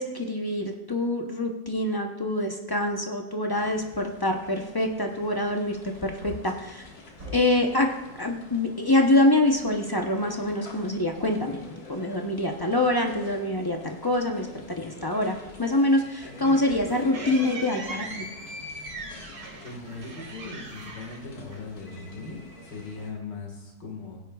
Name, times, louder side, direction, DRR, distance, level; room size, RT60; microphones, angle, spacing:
voice 1, 0.0-6.9 7.3-7.9 8.2-11.6 11.9-18.2, left 1 dB, 25° left, 3 dB, 0.5 m, -25 dB
sound 1, 3.5-23.1, left 2 dB, 60° left, 2.2 m, -46 dB
Wood, 5.9-7.7 10.4-11.2 11.5-11.6, equal, 85° right, 3.4 m, -44 dB
sound 2, 16.2-22.0, right 2 dB, 60° right, 2.4 m, -40 dB
voice 2, 19.6-24.2, left 3 dB, 85° left, 0 dB, 2.5 m, -39 dB
16.5 x 9.5 x 2.4 m, 1.1 s
omnidirectional pair, 1.9 m